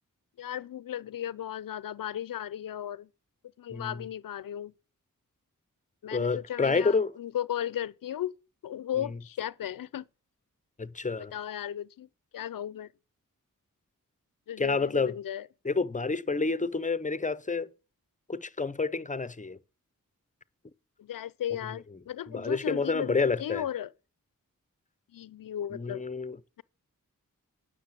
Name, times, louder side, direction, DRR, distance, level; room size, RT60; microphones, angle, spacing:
voice 1, 0.4-3.1 3.6-4.7 6.0-8.3 8.6-10.0 11.2-12.1 12.3-12.9 14.5-15.5 21.0-23.9 25.1-26.0, left 11 dB, 85° left, 0.5 m, -35 dB
voice 2, 6.1-7.1 10.8-11.3 14.6-15.1 15.6-17.7 18.3-19.6 22.3-23.6 25.7-26.4, left 4 dB, 25° left, 0.6 m, -29 dB
9.5 x 6.5 x 7.4 m
cardioid pair, 55°, 33 cm